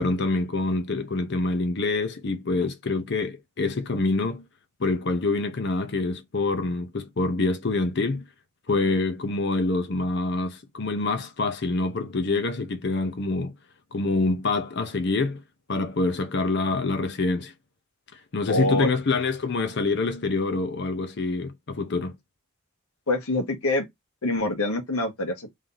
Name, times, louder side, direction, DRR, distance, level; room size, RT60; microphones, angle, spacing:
voice 1, 0.0-4.4 4.8-8.2 8.7-13.5 13.9-15.4 15.7-17.5 18.3-22.2, left 3 dB, 50° left, 0.6 m, -26 dB
voice 2, 18.5-18.9 23.1-23.8 24.2-25.5, left 2 dB, 85° left, 1.2 m, -25 dB
3.2 x 2.7 x 3.8 m
head